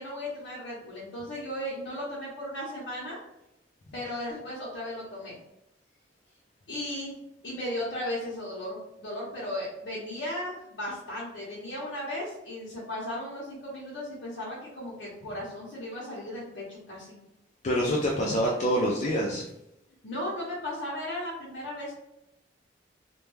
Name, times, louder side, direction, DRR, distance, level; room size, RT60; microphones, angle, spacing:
voice 1, 0.0-3.2 3.9-5.4 6.7-7.2 7.4-17.2 20.0-21.9, left 1 dB, 65° left, -7 dB, 0.7 m, -36 dB
voice 2, 17.6-19.4, equal, 40° left, -2 dB, 0.3 m, -26 dB
2.2 x 2.2 x 3.1 m, 0.87 s
head